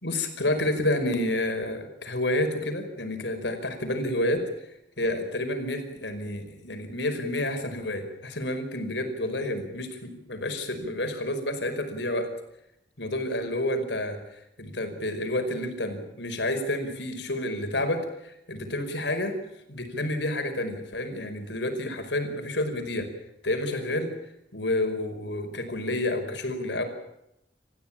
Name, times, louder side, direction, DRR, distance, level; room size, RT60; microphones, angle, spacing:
voice 1, 0.0-4.7 5.0-12.3 13.0-19.4 19.7-23.1 23.4-24.1 24.5-26.8, left 1 dB, 70° left, 6 dB, 5.2 m, -29 dB
28.0 x 15.0 x 8.8 m, 0.84 s
head